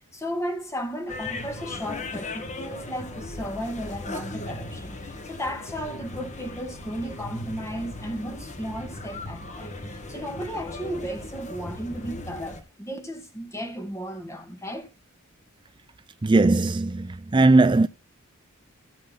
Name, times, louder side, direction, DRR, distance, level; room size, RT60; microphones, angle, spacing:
voice 1, 0.1-14.9, equal, 15° left, 2.1 m, -34 dB
sound 1, 1.1-12.6, left 2 dB, 35° left, 1.5 m, -37 dB
voice 2, 16.2-17.9, right 2 dB, 20° right, 0.4 m, -19 dB
16.0 x 6.6 x 4.0 m
head